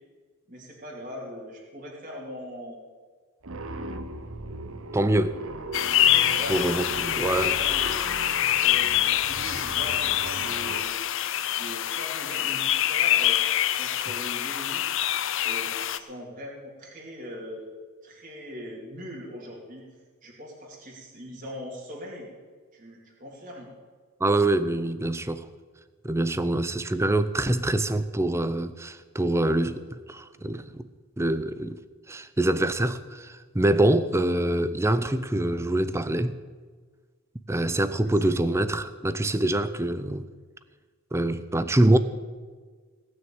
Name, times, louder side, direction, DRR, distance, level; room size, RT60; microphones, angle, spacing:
voice 1, 0.5-2.8 6.3-8.0 8.6-11.0 11.5-13.4 13.7-17.7 18.0-19.8 20.2-22.3 22.7-23.7 38.0-38.5, equal, 35° right, 2.8 m, -40 dB
sound 1, 3.4-10.8, right 2 dB, 65° right, 0.9 m, -38 dB
voice 2, 4.9-5.4 6.5-7.5 24.2-25.4 26.0-30.9 31.2-31.8 32.1-36.3 37.5-40.3 41.1-42.0, right 1 dB, 10° right, 0.5 m, -25 dB
sound 2, 5.7-16.0, left 12 dB, 60° left, 0.6 m, -25 dB
18.0 x 6.4 x 8.7 m
head